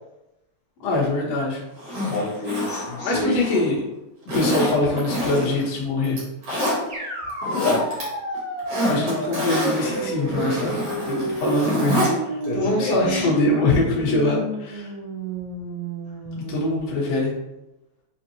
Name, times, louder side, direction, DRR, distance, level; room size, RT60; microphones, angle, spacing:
voice 1, 0.8-1.6 3.0-3.8 4.3-6.2 8.8-11.9 12.2-14.9 16.3-17.3, left 2 dB, 60° left, -5 dB, 1.8 m, -23 dB
Zipper (clothing), 1.8-3.7 4.3-5.7 6.0-6.8 7.3-8.0 8.3-12.1 12.4-12.5, equal, 85° right, 0.9 m, -26 dB
voice 2, 2.1-3.4 7.4-7.9 12.4-13.3, left 2 dB, 80° left, -6 dB, 1.7 m, -27 dB
sound 1, 6.9-16.8, right 2 dB, 55° right, 0.7 m, -32 dB
6.2 x 2.4 x 2.8 m, 0.94 s
omnidirectional pair, 4.0 m